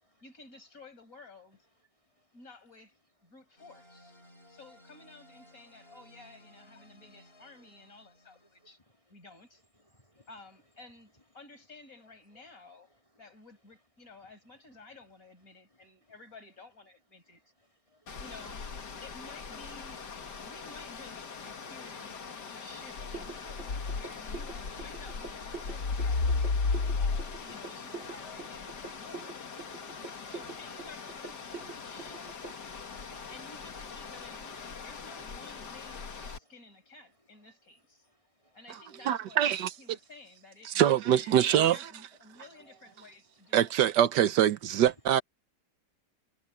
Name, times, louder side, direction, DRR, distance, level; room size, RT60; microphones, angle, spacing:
voice 1, 0.2-1.6 2.3-3.0 3.2-4.2 4.5-8.8 9.1-9.6 10.3-12.9 13.2-17.5 18.2-18.7 19.0-22.2 22.5-26.4 27.0-29.4 30.3-32.7 33.3-38.1 38.5-43.8, left 3 dB, 50° left, 6.2 m, -53 dB
sound 1, 3.6-8.7, left 1 dB, 35° left, 5.9 m, -58 dB
voice 2, 9.9-10.3 17.9-18.0 22.4-22.5 27.9-28.4 32.0-32.2 38.4-38.8 42.7-42.8, left 1 dB, 20° left, 2.6 m, -61 dB
sound 2, 18.1-36.4, left 4 dB, 80° left, 2.5 m, -37 dB
sound 3, 23.1-32.5, right 4 dB, 40° right, 2.3 m, -44 dB
voice 3, 39.1-39.7 40.7-41.8 43.5-45.2, right 10 dB, 90° right, 1.5 m, -24 dB
omnidirectional pair, 1.8 m